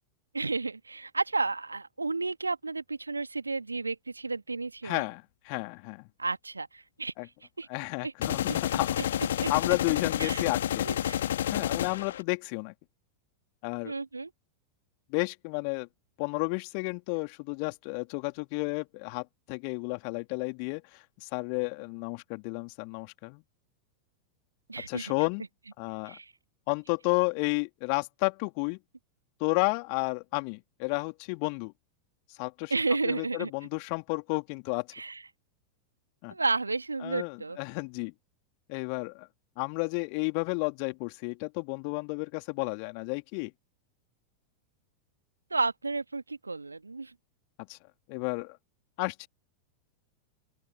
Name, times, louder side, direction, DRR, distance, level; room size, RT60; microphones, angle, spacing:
voice 1, 0.3-5.0 6.2-7.1 7.6-7.7 8.0-8.1 9.4-9.5 10.2-10.4 10.8-11.3 11.5-11.6 13.8-14.3 24.7-25.1 26.0-26.3 32.7-33.5 34.9-35.2 36.3-37.6 45.5-47.1, right 3 dB, 80° right, 1.9 m, -32 dB
voice 2, 4.8-6.1 7.2-7.3 7.7-8.9 9.5-10.9 11.5-12.7 13.6-13.9 15.1-15.9 16.2-23.4 24.9-25.4 25.8-26.2 26.7-28.8 29.4-31.7 32.3-32.7 33.0-34.9 36.2-36.3 37.0-38.1 38.7-39.3 39.6-43.5 47.7-47.8 48.1-48.6 49.0-49.3, left 40 dB or more, 45° left, 2.9 m, -32 dB
sound 1, 8.2-12.2, left 11 dB, 60° left, 1.9 m, -29 dB
open air
figure-of-eight pair, 90°, 0 cm